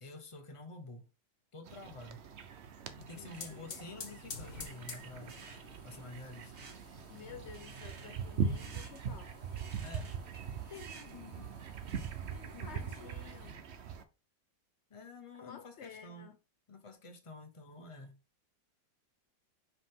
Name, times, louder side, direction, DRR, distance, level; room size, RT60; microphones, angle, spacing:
voice 1, 0.0-1.1 1.5-2.2 3.0-5.4 5.8-6.5 9.8-10.1 10.7-11.5 12.3-13.1 14.9-16.3 16.7-18.2, left 3 dB, 25° left, 0.7 m, -50 dB
sound 1, 1.7-14.0, right 6 dB, 55° right, 0.7 m, -41 dB
sound 2, 2.9-13.5, left 5 dB, 50° left, 1.6 m, -53 dB
voice 2, 3.2-3.8 7.1-9.3 12.6-13.6 15.4-16.4, left 7 dB, 80° left, 0.6 m, -52 dB
sound 3, 5.2-12.3, right 4 dB, 85° right, 2.2 m, -56 dB
5.5 x 5.0 x 3.6 m
omnidirectional pair, 1.9 m